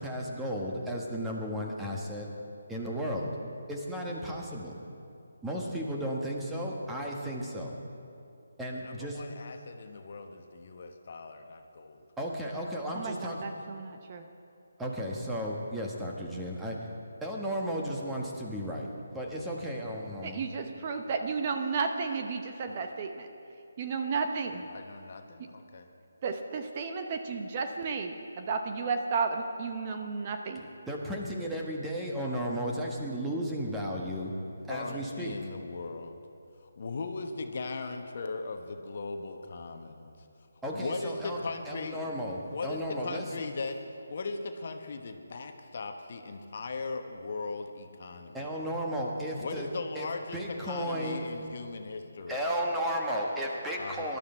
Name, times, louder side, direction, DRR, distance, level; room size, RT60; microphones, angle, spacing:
voice 1, 0.0-2.3 2.7-3.3 3.7-4.7 5.4-7.8 8.6-9.2 12.2-13.4 14.8-16.9 17.2-20.4 30.9-34.3 34.7-35.4 40.6-41.4 41.6-43.3 48.3-49.7 49.9-51.3 52.3-54.2, equal, 5° right, -2 dB, 1.5 m, -34 dB
voice 2, 8.8-12.0 24.7-25.9 34.7-36.2 36.8-40.2 40.7-42.1 42.5-43.8 44.1-48.4 49.4-52.4 53.8-54.2, left 3 dB, 50° left, 5 dB, 1.1 m, -38 dB
voice 3, 12.9-14.3 20.2-23.3 23.8-24.7 25.4-25.5 26.2-30.7, right 4 dB, 35° right, 5 dB, 0.8 m, -33 dB
19.5 x 12.0 x 4.5 m, 2.6 s
figure-of-eight pair, 150°, 0 cm